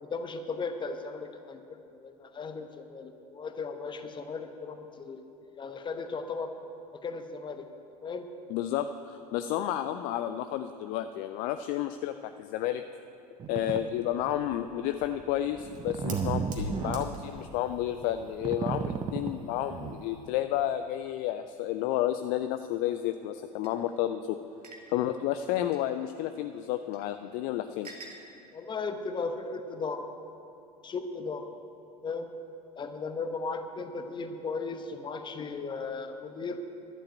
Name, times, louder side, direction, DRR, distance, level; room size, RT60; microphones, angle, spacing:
voice 1, 0.0-5.2 5.6-6.5 6.9-7.6 8.0-8.3 28.5-30.0 30.8-31.5 32.0-32.3 32.8-36.6, left 4 dB, 25° left, 7 dB, 1.0 m, -36 dB
voice 2, 8.5-12.8 13.5-24.4 24.9-27.9, left 12 dB, 45° left, 9 dB, 0.4 m, -31 dB
sound 1, 13.4-13.8 14.3-14.5 15.0-20.0, right 6 dB, 20° right, 0.6 m, -34 dB
Fire, 14.2-20.3, right 2 dB, 40° right, 1.9 m, -44 dB
sound 2, 23.6-23.7 24.6-24.9 25.7-25.8 26.9-27.0 27.8-28.2, right 3 dB, 75° right, 1.6 m, -46 dB
11.5 x 7.7 x 8.8 m, 2.8 s
figure-of-eight pair, 75°, 20 cm